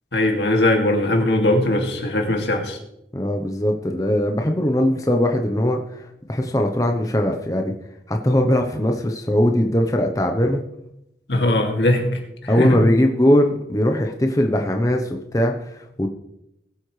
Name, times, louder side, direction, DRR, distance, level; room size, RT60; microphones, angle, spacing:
voice 1, 0.1-2.8 11.3-12.8, left 1 dB, 80° left, 2 dB, 2.3 m, -20 dB
voice 2, 3.1-7.7 8.1-10.6 12.5-16.1, left 1 dB, 20° left, 3 dB, 0.8 m, -20 dB
20.0 x 8.3 x 3.3 m, 0.83 s
head